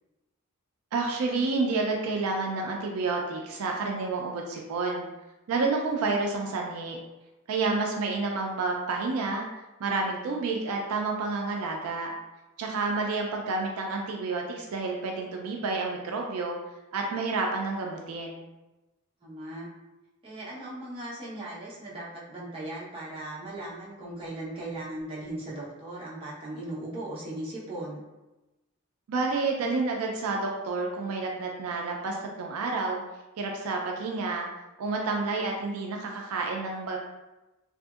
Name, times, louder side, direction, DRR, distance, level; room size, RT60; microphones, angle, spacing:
voice 1, 0.9-5.0 5.5-7.0 7.5-9.4 9.8-12.1 12.6-16.6 16.9-18.4 29.1-33.0 33.4-34.5 34.8-37.0, right 3 dB, 70° right, 0 dB, 0.4 m, -29 dB
voice 2, 19.2-19.7 20.2-28.0, right 1 dB, 25° right, -7 dB, 0.7 m, -38 dB
2.7 x 2.6 x 2.3 m, 1.0 s
head